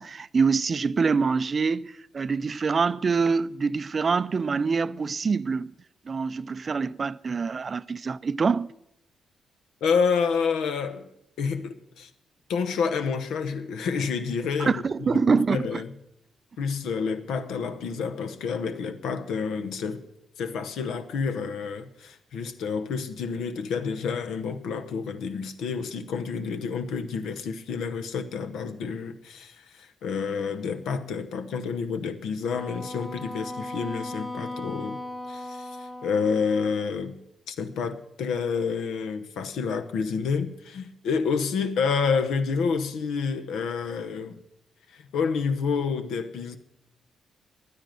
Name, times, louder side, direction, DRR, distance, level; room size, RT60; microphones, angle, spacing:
voice 1, 0.0-5.7 6.1-8.7 14.6-15.8, right 5 dB, 45° right, 0.4 m, -25 dB
voice 2, 9.8-11.1 11.4-12.1 12.5-15.9 16.6-20.0 20.4-35.0 35.3-37.2 37.5-44.4 44.9-46.6, left 5 dB, 75° left, 0.9 m, -29 dB
Wind instrument woodwind instrument, 32.5-37.0, left 1 dB, 20° left, 2.7 m, -37 dB
11.0 x 9.9 x 7.6 m
supercardioid pair, 50°, 0 cm